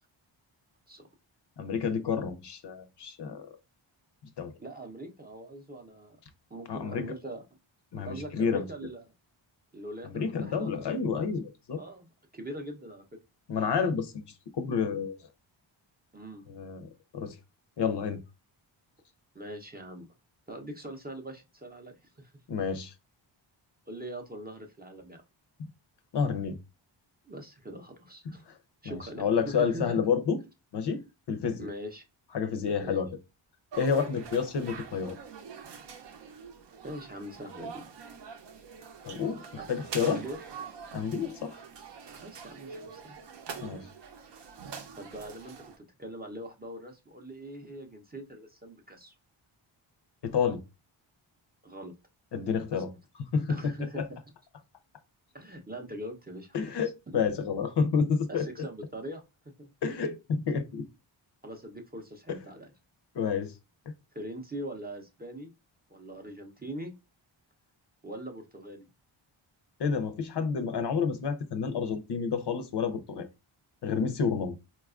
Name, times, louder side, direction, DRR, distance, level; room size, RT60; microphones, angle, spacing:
voice 1, 1.6-3.5 4.4-4.6 6.7-7.1 7.9-8.7 10.1-11.8 13.5-14.2 14.5-15.3 16.5-17.4 17.8-18.2 22.5-22.9 26.1-26.6 28.5-28.6 28.8-30.4 30.7-31.0 31.3-31.7 32.3-33.1 33.8-35.2 39.0-40.2 40.9-41.6 43.6-43.9 50.2-50.6 52.3-52.9 53.3-54.1 56.5-58.5 59.8-60.9 62.3-62.4 63.1-63.5 69.8-73.3 73.8-74.5, left 6 dB, 55° left, 0.6 m, -29 dB
voice 2, 4.6-6.2 6.5-7.4 7.9-9.0 9.7-11.0 11.8-12.1 12.3-13.0 16.1-16.5 19.3-20.1 20.5-22.3 23.9-25.2 27.3-28.5 28.8-30.0 31.6-32.0 32.8-33.0 36.8-37.9 40.0-40.4 42.2-43.2 43.6-43.7 45.0-49.1 51.6-51.9 52.7-53.0 53.5-54.2 55.3-56.7 57.1-57.2 58.3-59.2 59.6-59.7 61.4-62.7 64.1-65.5 65.9-66.9 68.0-68.9, right 1 dB, 20° right, 0.6 m, -42 dB
sound 1, 33.7-45.8, right 6 dB, 60° right, 0.6 m, -45 dB
4.0 x 2.3 x 2.4 m
wide cardioid pair, 105°, 49 cm